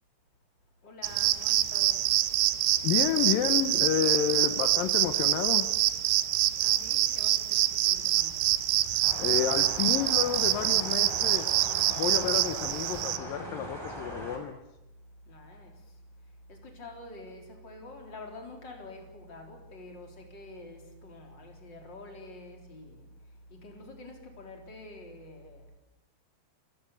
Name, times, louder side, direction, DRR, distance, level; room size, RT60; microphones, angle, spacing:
voice 1, 0.8-2.2 6.5-8.5 15.2-25.8, left 2 dB, 25° left, 2 dB, 3.7 m, -47 dB
sound 1, 1.0-13.2, right 15 dB, 90° right, 3.4 m, -26 dB
voice 2, 2.8-5.7 8.9-11.5 11.9-14.6, left 10 dB, 80° left, 8 dB, 2.0 m, -30 dB
sound 2, 9.0-14.4, right 1 dB, 5° right, 5.0 m, -40 dB
29.0 x 14.0 x 8.5 m, 0.98 s
omnidirectional pair, 5.5 m